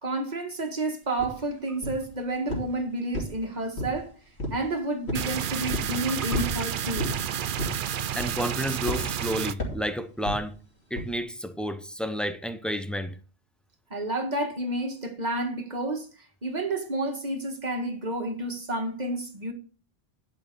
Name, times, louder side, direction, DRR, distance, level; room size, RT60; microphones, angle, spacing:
voice 1, 0.0-4.1 4.5-7.2 13.9-16.1 16.4-19.5, right 2 dB, 40° right, 1.7 m, -30 dB
sound 1, 1.2-1.3 1.8-2.1 2.5-2.8 3.1-4.0 4.4-4.7 5.1-5.3 5.7-5.9 6.3-6.6 7.0-7.2 7.6-7.9 8.2-8.5 8.9-9.1 9.6-9.9 10.3-10.4 11.0-11.1, left 1 dB, 80° left, 2.9 m, -31 dB
sound 2, 5.1-9.5, right 9 dB, 60° right, 0.7 m, -30 dB
voice 2, 8.2-10.5 10.9-13.2, equal, ahead, 0.6 m, -31 dB
10.5 x 5.7 x 5.3 m
omnidirectional pair, 1.1 m